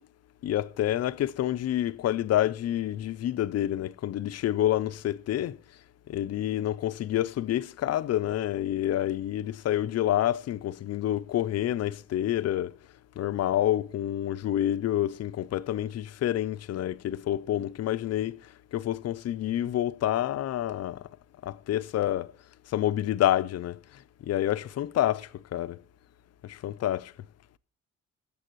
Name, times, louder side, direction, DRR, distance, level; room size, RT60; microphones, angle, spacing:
voice 1, 0.4-5.6 6.1-12.7 13.2-18.4 18.7-21.1 21.4-22.3 22.7-23.8 24.2-25.8 26.4-27.1, left 12 dB, 55° left, 0.5 m, -28 dB
17.5 x 7.1 x 3.0 m
cardioid pair, 90°, 30 cm